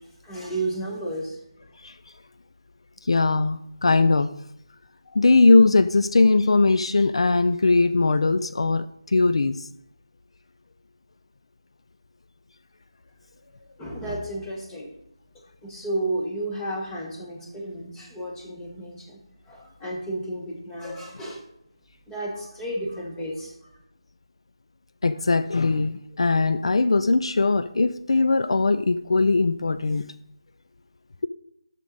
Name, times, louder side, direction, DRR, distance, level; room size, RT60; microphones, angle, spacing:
voice 1, 0.2-1.4 13.8-14.9 15.6-19.2 19.5-21.4 22.1-23.5, right 1 dB, 10° left, -2 dB, 1.2 m, -32 dB
voice 2, 3.0-4.3 5.1-9.7 25.0-30.0, left 3 dB, 70° left, 12 dB, 0.4 m, -20 dB
8.3 x 6.6 x 3.9 m, 0.78 s
figure-of-eight pair, 165°, 3 cm